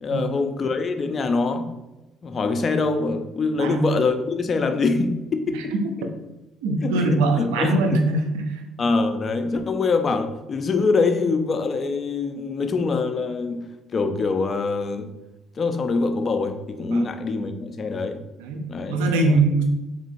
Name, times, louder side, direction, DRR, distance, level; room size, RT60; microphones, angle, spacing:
voice 1, 0.0-1.7 2.2-5.7 6.8-8.0 8.8-15.1 15.6-18.2 18.7-19.4, left 4 dB, 45° left, 7 dB, 0.5 m, -24 dB
voice 2, 6.6-8.6 16.9-17.1 18.4-19.6, right 2 dB, 85° right, 4 dB, 0.5 m, -22 dB
4.0 x 3.7 x 2.6 m, 1.0 s
supercardioid pair, 65°, 0 cm